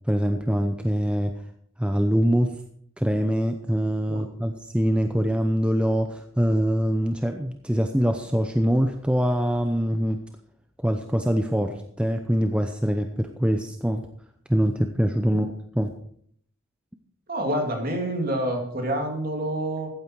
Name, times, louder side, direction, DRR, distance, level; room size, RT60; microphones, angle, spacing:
voice 1, 0.1-1.3 1.8-2.6 3.0-10.2 10.8-14.0 14.5-15.9, equal, 5° right, 5 dB, 0.6 m, -24 dB
voice 2, 17.3-19.9, right 1 dB, 45° right, 2 dB, 2.7 m, -27 dB
15.0 x 9.0 x 4.5 m, 0.65 s
head